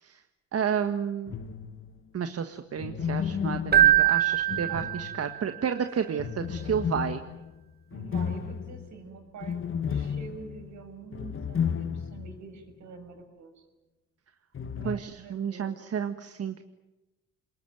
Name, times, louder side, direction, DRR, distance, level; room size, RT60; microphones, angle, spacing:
voice 1, 0.5-1.3 2.1-7.2 14.8-16.6, right 7 dB, 50° right, 8 dB, 1.6 m, -31 dB
sound 1, 1.3-2.0 2.8-5.5 6.2-12.4 12.7-12.8 14.5-14.9, left 7 dB, 45° left, 1.6 m, -33 dB
Keyboard (musical), 3.7-5.5, right 12 dB, 30° right, 1.6 m, -22 dB
voice 2, 7.9-9.6 9.9-13.7 14.7-15.9, right 4 dB, 70° right, 5 dB, 6.8 m, -46 dB
28.0 x 20.5 x 9.3 m, 1.0 s
cardioid pair, 90°, 30 cm